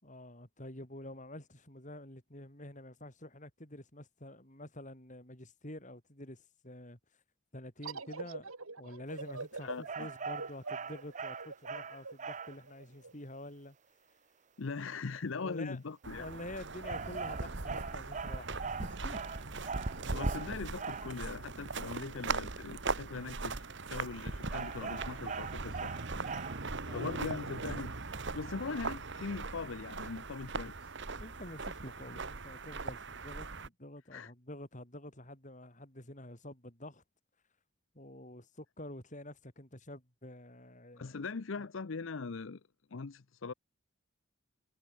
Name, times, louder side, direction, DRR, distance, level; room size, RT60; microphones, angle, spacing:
voice 1, 0.0-7.0 7.5-13.8 15.4-15.8 16.2-19.3 26.9-27.2 31.2-37.0 37.9-41.2, left 1 dB, 35° left, 6.3 m, -48 dB
sound 1, 7.8-13.1, right 3 dB, 85° right, 2.9 m, -45 dB
voice 2, 9.6-10.1 14.6-16.3 20.1-25.9 26.9-27.9 28.3-30.9 34.1-34.3 41.0-42.6 42.9-43.5, left 4 dB, 65° left, 0.7 m, -41 dB
sound 2, 9.9-12.6 16.8-21.2 24.5-26.8, right 5 dB, 35° right, 0.7 m, -41 dB
sound 3, 16.0-33.7, right 3 dB, 60° right, 1.6 m, -39 dB
head